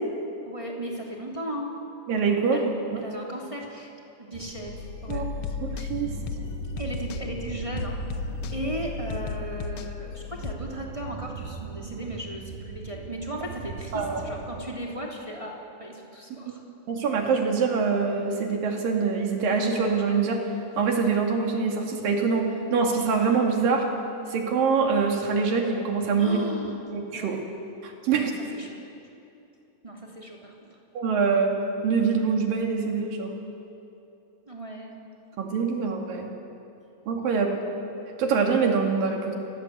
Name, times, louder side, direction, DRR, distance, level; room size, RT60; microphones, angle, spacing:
voice 1, 0.4-1.8 2.5-2.7 3.0-3.9 4.2-5.2 6.8-8.0 8.5-16.6 26.2-26.8 27.1-27.4 28.1-28.8 29.8-30.7 34.5-35.0, right 1 dB, 10° right, -2 dB, 2.6 m, -36 dB
voice 2, 2.1-2.6 2.9-3.0 5.1-5.2 5.6-6.1 13.9-14.2 16.9-20.4 20.8-23.9 24.3-26.4 26.9-27.4 27.8-28.3 31.0-31.5 31.8-33.3 35.4-36.3 37.1-37.5 38.2-39.4, right 5 dB, 85° right, 1 dB, 4.1 m, -24 dB
sound 1, 4.3-14.7, right 6 dB, 65° right, 2.4 m, -39 dB
sound 2, 4.7-10.5, left 8 dB, 90° left, 1.2 m, -35 dB
29.0 x 17.0 x 8.2 m, 2.8 s
omnidirectional pair, 3.9 m